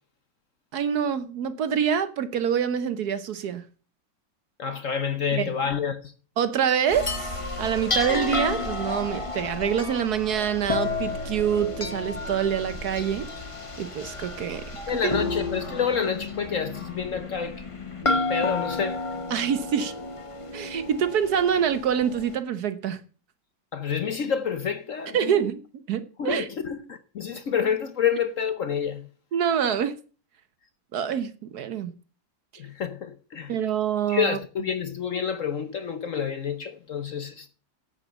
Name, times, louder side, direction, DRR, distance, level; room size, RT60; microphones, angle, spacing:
voice 1, 0.7-3.6 5.3-5.5 6.4-13.3 13.8-14.6 15.0-15.1 19.3-19.9 20.5-23.0 25.1-25.6 25.9-26.5 29.3-30.0 30.9-31.9 33.5-34.4, right 8 dB, 60° right, 1.2 m, -26 dB
voice 2, 4.6-6.0 14.9-17.6 18.0-19.0 23.7-25.3 26.2-29.0 32.6-33.5 34.1-37.5, left 7 dB, 55° left, 1.0 m, -28 dB
sound 1, 6.9-22.4, left 3 dB, 20° left, 1.0 m, -31 dB
8.4 x 8.3 x 7.0 m
omnidirectional pair, 2.0 m